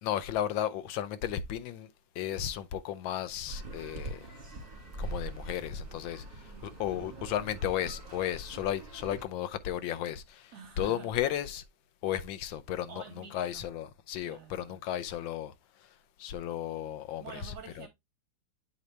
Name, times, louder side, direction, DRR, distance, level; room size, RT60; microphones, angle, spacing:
voice 1, 0.0-1.9 2.2-4.3 5.0-11.6 12.0-15.5 16.2-17.9, left 10 dB, 80° left, 1.4 m, -34 dB
sound 1, 3.5-9.2, right 2 dB, 30° right, 2.0 m, -43 dB
voice 2, 6.4-6.8 10.5-11.1 12.9-13.7 14.2-14.8 17.2-17.9, right 6 dB, 60° right, 1.3 m, -48 dB
8.2 x 4.0 x 3.3 m
omnidirectional pair, 2.1 m